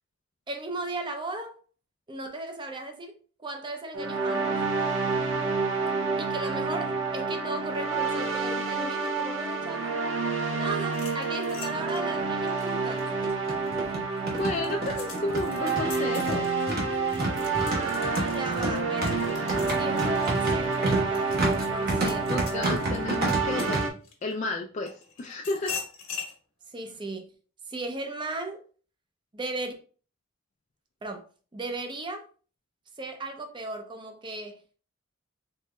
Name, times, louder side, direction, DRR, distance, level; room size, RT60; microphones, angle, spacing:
voice 1, 0.5-1.6 2.1-3.1 3.4-4.6 6.2-10.0 10.5-13.1 17.6-19.4 19.8-22.5 26.7-27.3 27.7-28.6 29.3-29.7 31.0-31.2 31.5-32.2 33.0-34.6, right 2 dB, 25° right, 0.5 m, -36 dB
sound 1, 3.9-23.9, right 4 dB, 65° right, 0.7 m, -29 dB
sound 2, 10.8-13.7 14.2-24.3 24.9-26.3, left 6 dB, 90° left, 1.2 m, -42 dB
sound 3, 11.8-11.9 12.1-12.2 13.1-23.8, right 1 dB, 50° right, 1.0 m, -30 dB
voice 2, 14.4-16.5 22.3-23.9 24.2-24.9 25.2-25.7, left 2 dB, 35° left, 0.3 m, -32 dB
4.3 x 3.4 x 2.2 m
head